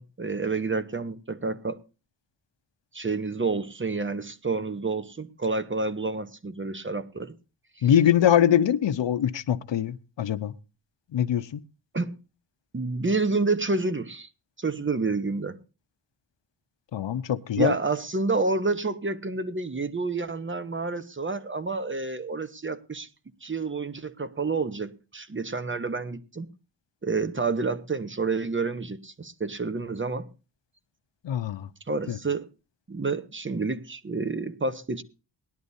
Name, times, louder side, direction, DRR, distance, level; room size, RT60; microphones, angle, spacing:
voice 1, 0.0-1.8 2.9-7.3 7.8-7.9 11.9-12.1 12.7-14.3 14.6-15.6 17.6-23.1 23.4-26.5 27.0-30.3 31.9-32.5 32.9-35.0, right 3 dB, 25° right, 0.9 m, -29 dB
voice 2, 7.8-10.5 11.1-11.6 16.9-17.7 31.2-31.7 32.1-32.2, left 10 dB, 75° left, 0.8 m, -23 dB
19.5 x 11.0 x 2.7 m
wide cardioid pair, 125°, 44 cm